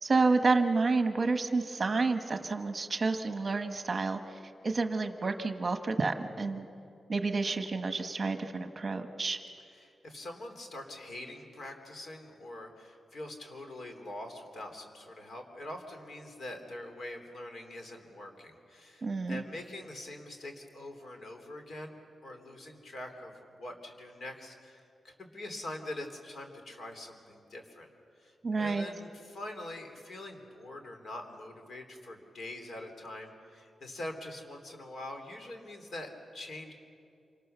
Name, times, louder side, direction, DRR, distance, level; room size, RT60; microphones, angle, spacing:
voice 1, 0.0-6.7 7.1-9.4 19.0-19.4 28.4-28.9, right 3 dB, 35° right, 7 dB, 1.2 m, -29 dB
voice 2, 9.8-22.0 22.2-27.9 28.2-36.7, left 1 dB, 55° left, 4 dB, 3.5 m, -44 dB
27.5 x 25.5 x 6.9 m, 2.6 s
wide cardioid pair, 145°, 0 cm